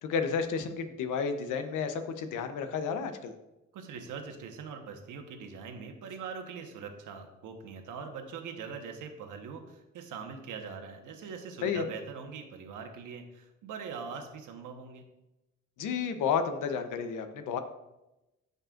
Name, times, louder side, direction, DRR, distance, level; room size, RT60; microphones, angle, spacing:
voice 1, 0.0-3.3 11.6-11.8 15.8-17.6, left 6 dB, 85° left, 8 dB, 0.9 m, -31 dB
voice 2, 3.7-15.0, right 5 dB, 85° right, 4 dB, 1.3 m, -42 dB
13.0 x 5.4 x 2.5 m, 0.95 s
cardioid pair, 90°, 30 cm